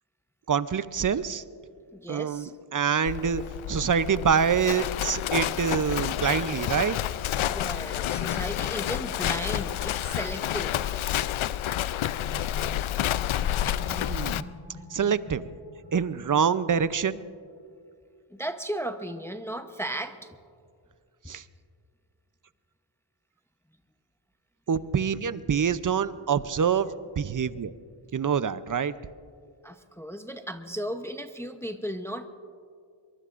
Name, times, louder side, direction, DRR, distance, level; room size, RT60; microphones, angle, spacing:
voice 1, 0.5-1.4 2.1-3.4 3.7-7.0 13.8-14.4 14.9-15.4 15.9-17.2 21.3-21.4 24.7-27.7 28.1-28.9, right 7 dB, 40° right, 15 dB, 0.6 m, -26 dB
voice 2, 1.9-2.5 7.5-10.8 18.3-20.4 29.6-32.3, right 1 dB, 5° left, 7 dB, 0.8 m, -35 dB
Livestock farm animals working animals, 3.1-14.4, left 12 dB, 70° left, 0.6 m, -29 dB
sound 1, 12.1-17.4, equal, 45° left, 3.9 m, -45 dB
23.0 x 22.5 x 2.5 m, 2.3 s
cardioid pair, 60°, 50 cm